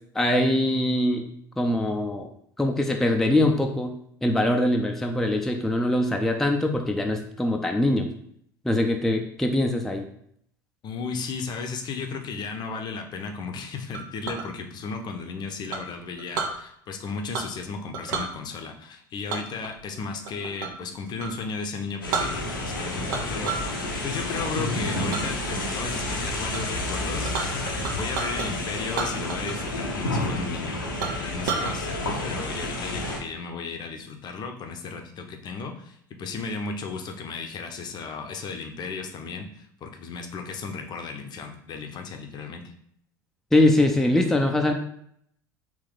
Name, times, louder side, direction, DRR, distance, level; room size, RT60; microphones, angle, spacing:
voice 1, 0.1-1.3 1.6-2.3 2.6-3.9 4.2-8.1 8.6-10.1 43.5-44.7, left 1 dB, 5° left, 3 dB, 0.4 m, -23 dB
voice 2, 10.8-30.8 31.2-42.6, left 4 dB, 40° left, 4 dB, 0.6 m, -35 dB
Chink clink, 13.9-14.5 15.7-16.6 17.3-17.6 17.9-18.3 19.3-20.8 21.2-21.4 21.8-21.9 22.1-22.7 23.1-23.7 24.1-24.5 25.1-25.3 25.8-26.1 26.5-26.6 26.9-28.5 28.9-29.7 30.0-30.1 30.5-30.6 31.0-31.7, right 5 dB, 70° right, 0.7 m, -31 dB
sound 1, 22.0-33.2, left 1 dB, 90° left, 0.7 m, -30 dB
3.6 x 2.5 x 3.8 m, 0.68 s
hypercardioid pair, 75°, 11 cm